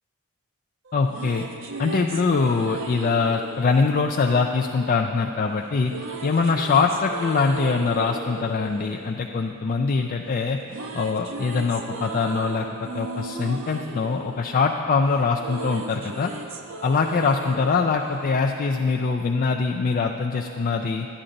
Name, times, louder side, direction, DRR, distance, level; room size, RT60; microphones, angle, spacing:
voice 1, 0.9-1.5 1.8-5.9 6.2-10.6 10.9-16.3 16.8-21.1, left 4 dB, 40° left, 3 dB, 0.3 m, -23 dB
sound 1, 0.9-5.0 5.9-10.1 10.4-18.9, right 3 dB, 60° right, 0.7 m, -37 dB
11.0 x 10.0 x 3.9 m, 2.5 s
head